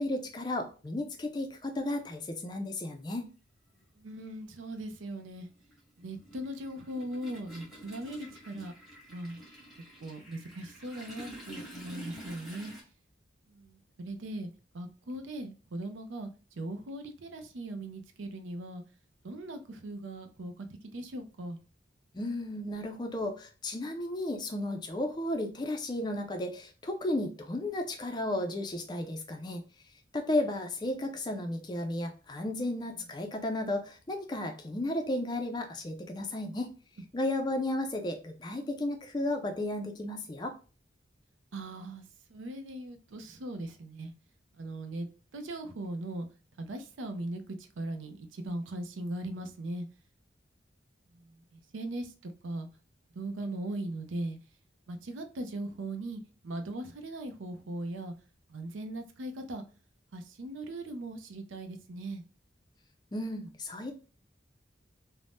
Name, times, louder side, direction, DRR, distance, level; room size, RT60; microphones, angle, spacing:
voice 1, 0.0-3.3 22.1-29.6 30.1-36.7 37.1-40.5 63.1-63.9, left 1 dB, 20° left, 0.4 m, -34 dB
Toilet flush, 2.3-2.4 3.7-3.9 4.2-12.8, right 1 dB, ahead, 0.9 m, -48 dB
voice 2, 4.0-5.5 6.0-8.7 9.1-9.4 10.0-12.7 13.5-18.8 19.2-21.6 41.5-42.0 42.3-44.1 44.6-45.1 45.3-46.3 46.6-49.9 51.1-52.7 53.1-54.4 54.9-58.1 58.5-59.6 60.1-62.2, right 1 dB, 85° right, 0.5 m, -39 dB
2.6 x 2.1 x 3.3 m
head